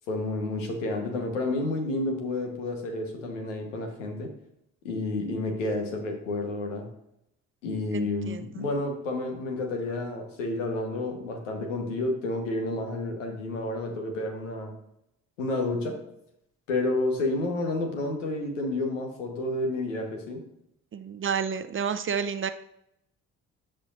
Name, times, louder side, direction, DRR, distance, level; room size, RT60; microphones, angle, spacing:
voice 1, 0.1-4.3 4.8-6.9 7.6-14.8 15.4-16.0 16.7-20.5, left 2 dB, 90° left, 3 dB, 1.2 m, -30 dB
voice 2, 7.9-8.4 20.9-22.5, right 7 dB, 35° right, 11 dB, 0.6 m, -30 dB
13.0 x 5.0 x 2.5 m, 0.80 s
hypercardioid pair, 45°, 37 cm